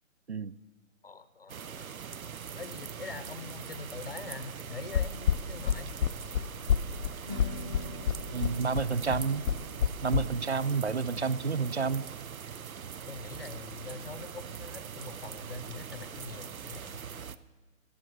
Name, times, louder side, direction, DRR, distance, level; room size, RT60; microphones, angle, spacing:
voice 1, 1.0-5.9 13.1-17.0, left 4 dB, 45° left, 12 dB, 0.8 m, -44 dB
sound 1, 1.5-17.4, right 7 dB, 80° right, 0.8 m, -42 dB
sound 2, 4.9-10.2, left 8 dB, 75° left, 0.6 m, -28 dB
sound 3, 7.2-13.5, equal, 20° right, 0.7 m, -46 dB
voice 2, 8.3-9.4 10.0-12.0, right 5 dB, 55° right, 18 dB, 0.4 m, -29 dB
14.5 x 13.0 x 4.7 m, 1.2 s
hypercardioid pair, 180°, 41 cm